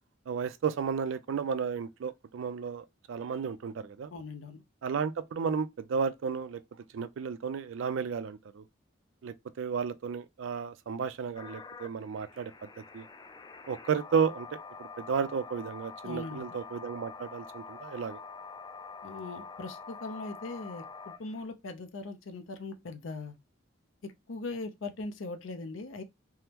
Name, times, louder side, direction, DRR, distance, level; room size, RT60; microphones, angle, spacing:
voice 1, 0.3-4.1 4.8-6.6 6.9-8.6 9.2-12.5 12.9-13.0 13.7-14.5 15.0-18.2, right 6 dB, 75° right, 0.4 m, -33 dB
voice 2, 4.1-4.6 16.0-16.5 19.0-23.4 24.0-26.0, left 3 dB, 80° left, 0.6 m, -40 dB
sound 1, 11.3-21.4, left 5 dB, 20° left, 0.3 m, -46 dB
3.5 x 2.0 x 2.9 m
head